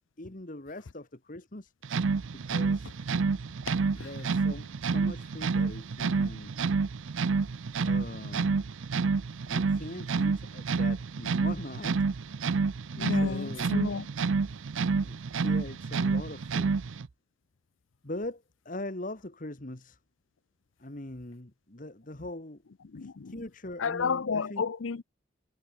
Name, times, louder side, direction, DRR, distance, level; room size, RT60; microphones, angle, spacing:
voice 1, 0.2-1.7 2.3-2.9 4.0-6.5 7.8-8.6 9.5-12.1 13.1-13.7 15.0-16.8 18.0-20.0 20.8-22.6 23.0-24.6, left 1 dB, 40° left, 1.7 m, -41 dB
sound 1, 1.8-17.1, right 4 dB, 75° right, 0.6 m, -29 dB
voice 2, 12.9-14.1 22.8-23.4 23.8-25.0, left 5 dB, 80° left, 0.6 m, -32 dB
head